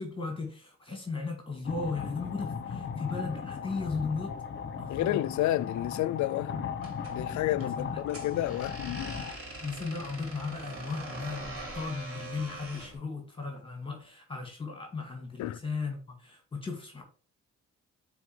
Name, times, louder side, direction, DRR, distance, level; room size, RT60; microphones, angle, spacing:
voice 1, 0.0-4.3 4.8-5.2 7.8-8.0 9.6-17.0, left 4 dB, 15° left, 2.1 m, -36 dB
sound 1, 1.6-9.3, left 6 dB, 40° left, 1.0 m, -37 dB
voice 2, 4.9-6.7 7.1-9.2 15.4-15.6, left 14 dB, 70° left, 0.5 m, -30 dB
sound 2, 6.8-13.0, right 1 dB, 45° right, 3.4 m, -43 dB
8.2 x 4.1 x 3.2 m
cardioid pair, 90°, 30 cm